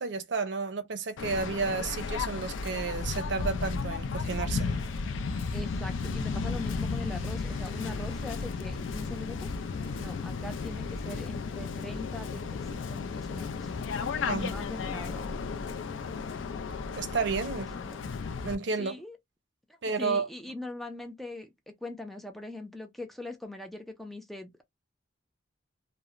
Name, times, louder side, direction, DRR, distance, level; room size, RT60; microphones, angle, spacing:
voice 1, 0.0-4.7 14.3-14.5 17.0-17.7 18.4-19.0 19.8-20.3, right 4 dB, 65° right, 0.5 m, -31 dB
Waves surf, 1.2-18.6, left 4 dB, 85° left, 0.4 m, -34 dB
sound 1, 4.5-11.4, left 1 dB, 40° left, 0.9 m, -53 dB
voice 2, 5.5-9.5 10.0-13.7 14.3-15.5 17.8-18.0 18.8-19.2 19.7-24.6, left 2 dB, ahead, 0.3 m, -41 dB
2.9 x 2.0 x 2.4 m
head